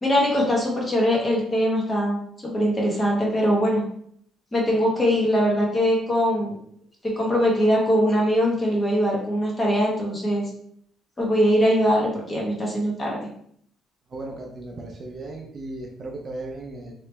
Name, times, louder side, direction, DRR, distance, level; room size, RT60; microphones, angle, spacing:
voice 1, 0.0-3.8 4.5-6.5 7.0-10.5 11.2-13.2, equal, 20° left, -3 dB, 1.1 m, -22 dB
voice 2, 14.1-16.9, right 2 dB, 35° right, 1 dB, 0.5 m, -36 dB
3.0 x 2.9 x 3.3 m, 0.66 s
cardioid pair, 140°, 0 cm